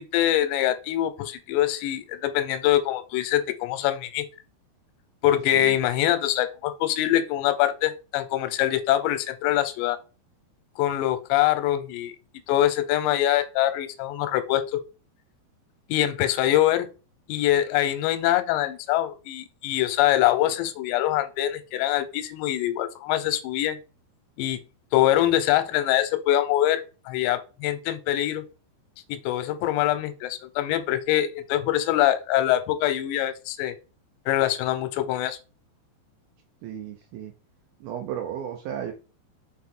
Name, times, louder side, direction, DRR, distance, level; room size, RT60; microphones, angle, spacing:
voice 1, 0.0-4.3 5.2-10.0 10.8-12.1 12.5-14.8 15.9-16.9 17.3-23.8 24.4-24.6 24.9-28.4 29.1-33.7 34.3-35.4, left 13 dB, 80° left, 11 dB, 2.9 m, -24 dB
voice 2, 36.6-37.3 37.8-38.9, right 9 dB, 80° right, 4 dB, 2.2 m, -34 dB
6.3 x 4.0 x 3.7 m, 0.32 s
omnidirectional pair, 5.1 m